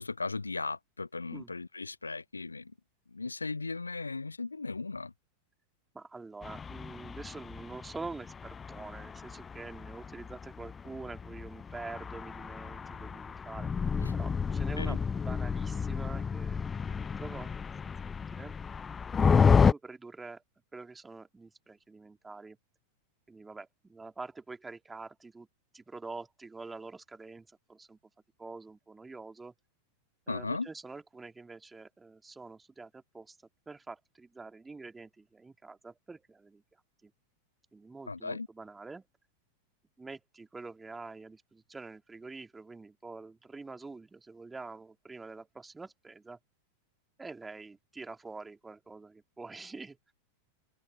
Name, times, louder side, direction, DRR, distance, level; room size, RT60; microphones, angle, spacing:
voice 1, 0.0-2.7 3.1-5.1 14.0-14.1 14.8-15.0 30.3-30.7 38.1-38.5, left 3 dB, 80° left, 0.7 m, -37 dB
voice 2, 5.9-13.9 14.1-18.6 19.3-20.4 20.7-22.6 23.3-25.5 25.7-28.0 28.4-29.5 30.3-33.4 33.7-36.6 37.0-37.1 37.7-39.1 40.0-46.4 47.2-50.1, right 3 dB, 10° right, 2.7 m, -46 dB
sound 1, 6.4-19.7, left 6 dB, 15° left, 0.5 m, -31 dB
open air
figure-of-eight pair, 90°, 0 cm